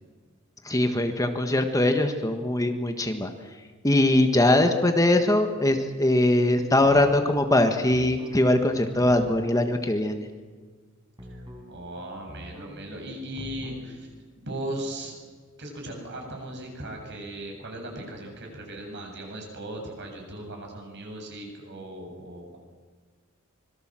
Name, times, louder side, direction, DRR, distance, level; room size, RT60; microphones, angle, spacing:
voice 1, 0.6-3.3 3.8-10.3, left 1 dB, 15° left, 6 dB, 1.4 m, -22 dB
sound 1, 6.8-7.3 7.9-8.4 9.0-9.5 11.2-11.7 12.3-12.8 13.4-13.9, equal, 20° right, 4.7 m, -43 dB
voice 2, 11.3-14.1 14.4-15.2 15.6-22.6, right 1 dB, 55° right, 1 dB, 7.6 m, -38 dB
25.5 x 22.5 x 7.6 m, 1.5 s
head